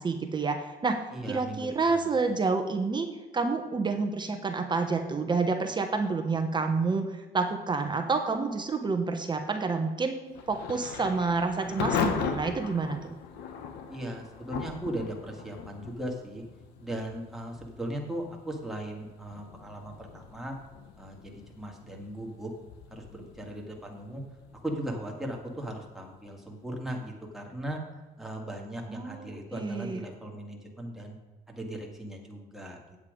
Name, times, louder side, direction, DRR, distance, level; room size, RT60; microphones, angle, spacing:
voice 1, 0.0-3.1 3.3-13.1 28.9-30.0, right 4 dB, 25° right, 5 dB, 1.1 m, -29 dB
voice 2, 1.1-2.1 13.9-16.4 16.8-20.5 21.0-22.5 22.9-24.2 24.6-27.8 28.2-31.2 31.5-33.0, right 1 dB, ahead, -1 dB, 2.0 m, -38 dB
Thunder / Rain, 10.3-27.0, left 6 dB, 85° left, 1.2 m, -39 dB
8.6 x 8.1 x 5.2 m, 1.2 s
cardioid pair, 110°, 17 cm